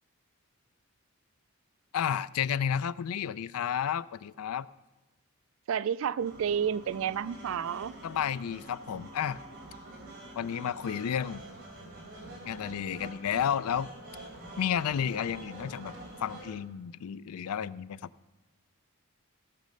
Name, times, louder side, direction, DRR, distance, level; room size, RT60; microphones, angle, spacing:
voice 1, 1.9-4.7 8.0-9.4 10.4-11.4 12.4-13.9 14.6-15.9 16.2-18.0, left 8 dB, 90° left, 18 dB, 0.4 m, -31 dB
voice 2, 5.7-7.9, right 8 dB, 65° right, 18 dB, 0.3 m, -30 dB
sound 1, 6.2-16.5, right 2 dB, 50° right, 3.5 m, -46 dB
16.5 x 6.5 x 5.3 m, 1.2 s
head